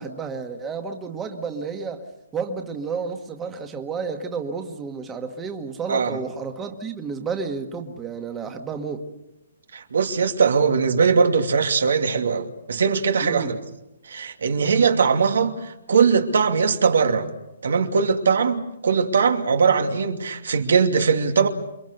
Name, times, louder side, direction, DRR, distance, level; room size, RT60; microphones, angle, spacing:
voice 1, 0.0-2.0 2.3-9.1 13.2-13.5 14.6-14.9, right 5 dB, 10° right, 1.7 m, -31 dB
voice 2, 5.9-6.2 9.7-13.6 14.0-17.3 17.6-21.5, right 5 dB, 80° right, 2.6 m, -20 dB
28.5 x 23.5 x 6.7 m
hypercardioid pair, 165°, 0 cm